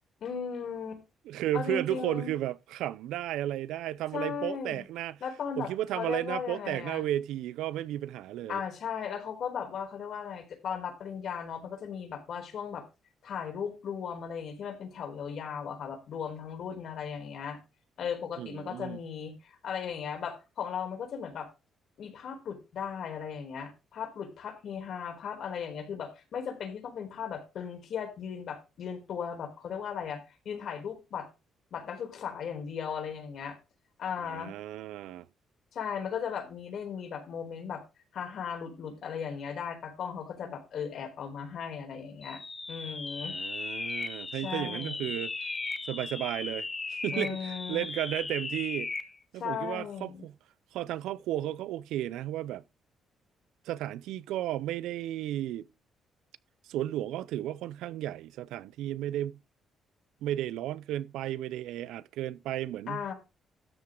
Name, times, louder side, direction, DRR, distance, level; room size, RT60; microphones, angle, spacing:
voice 1, 0.2-1.0 1.5-2.3 4.1-4.8 5.2-7.0 8.5-12.8 13.2-17.6 18.0-21.5 22.0-31.3 31.7-33.6 34.0-34.5 35.7-37.8 38.1-42.4 42.7-43.4 44.4-45.1 47.1-47.8 49.3-50.2 62.9-63.1, left 7 dB, 65° left, 4.2 m, -37 dB
voice 2, 1.3-5.2 5.6-8.6 18.4-19.0 34.2-35.3 43.2-45.3 45.9-46.7 47.0-48.9 49.3-50.4 50.7-52.6 53.6-55.7 56.6-59.4 60.2-63.0, right 13 dB, 90° right, 0.5 m, -33 dB
sound 1, 42.2-49.1, left 3 dB, 30° left, 1.2 m, -37 dB
13.0 x 7.5 x 3.8 m
cardioid pair, 90°, 0 cm